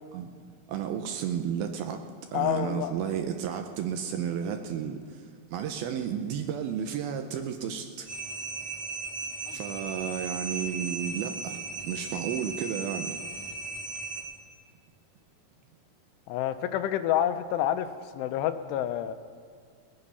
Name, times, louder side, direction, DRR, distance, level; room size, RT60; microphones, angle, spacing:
voice 1, 0.7-2.0 2.3-8.1 9.5-13.1, right 8 dB, 80° right, 5 dB, 2.3 m, -32 dB
voice 2, 2.3-2.9 9.5-9.6 16.3-17.9 18.1-19.1, left 11 dB, 85° left, 10 dB, 2.7 m, -28 dB
sound 1, 8.1-14.2, right 3 dB, 45° right, 3.1 m, -36 dB
20.0 x 9.7 x 5.6 m, 2.2 s
omnidirectional pair, 4.8 m